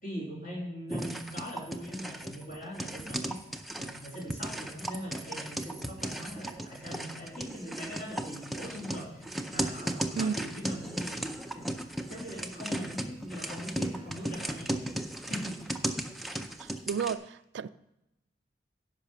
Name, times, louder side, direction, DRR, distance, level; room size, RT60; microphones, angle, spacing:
voice 1, 0.0-3.4 3.8-15.8, equal, 50° left, 3.4 m, -41 dB
sound 1, 0.9-17.1, right 1 dB, ahead, 0.5 m, -36 dB
voice 2, 16.6-17.7, right 6 dB, 70° right, 0.3 m, -32 dB
10.5 x 5.6 x 6.8 m
head